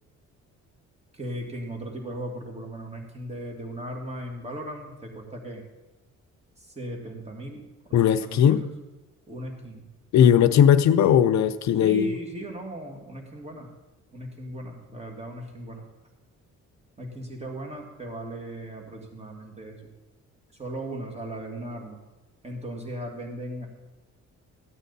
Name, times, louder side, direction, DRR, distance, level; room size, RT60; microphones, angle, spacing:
voice 1, 1.1-5.6 6.6-8.7 9.3-9.9 11.7-13.7 14.1-15.8 17.0-19.9 20.5-22.0 22.4-23.7, right 1 dB, 20° right, 1 dB, 2.3 m, -37 dB
voice 2, 7.9-8.6 10.1-12.1, left 9 dB, 65° left, 11 dB, 0.6 m, -18 dB
14.0 x 9.0 x 4.1 m, 1.0 s
cardioid pair, 90°, 30 cm